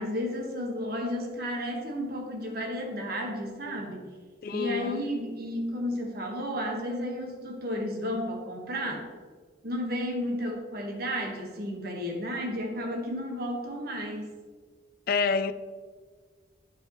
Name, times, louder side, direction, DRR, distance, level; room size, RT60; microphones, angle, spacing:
voice 1, 0.0-4.1 4.5-9.0 9.6-14.3, equal, 55° right, 1.4 m, -32 dB
voice 2, 4.4-5.0 15.1-15.5, left 5 dB, 55° left, 0.4 m, -27 dB
12.0 x 4.7 x 3.1 m
head